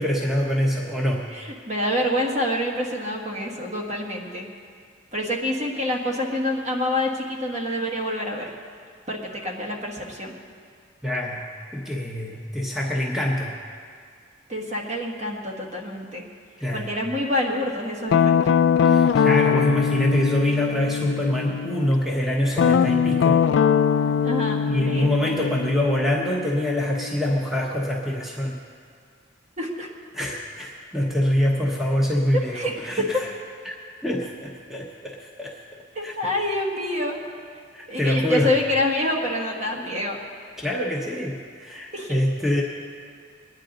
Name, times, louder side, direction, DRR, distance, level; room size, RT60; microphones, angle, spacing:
voice 1, 0.0-1.3 11.0-13.6 16.6-16.9 18.8-23.5 24.6-28.6 30.1-33.3 33.6-33.7 34.0-36.1 37.7-38.5 40.6-42.6, left 1 dB, ahead, -2 dB, 1.0 m, -25 dB
voice 2, 1.3-4.5 5.1-8.5 9.1-10.3 14.5-16.2 16.7-18.5 24.2-25.4 29.6-29.9 32.5-33.2 35.9-37.2 37.9-40.2 41.9-42.2, left 1 dB, 40° right, -1 dB, 1.5 m, -27 dB
Guitar, 18.1-21.9 22.5-27.3, left 7 dB, 70° left, 0.3 m, -21 dB
21.0 x 9.8 x 3.9 m, 2.2 s
head